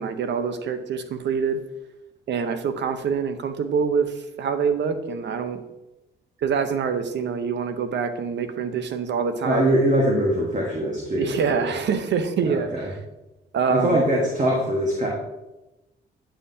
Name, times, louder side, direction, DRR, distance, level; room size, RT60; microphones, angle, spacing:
voice 1, 0.0-1.6 2.3-5.6 6.4-9.7 11.1-12.7 13.5-14.0, right 6 dB, 65° right, 9 dB, 0.8 m, -25 dB
voice 2, 9.4-11.7 12.4-12.9 13.7-15.1, equal, 40° right, -2 dB, 1.5 m, -22 dB
9.8 x 5.7 x 2.8 m, 0.98 s
cardioid pair, 90°, 20 cm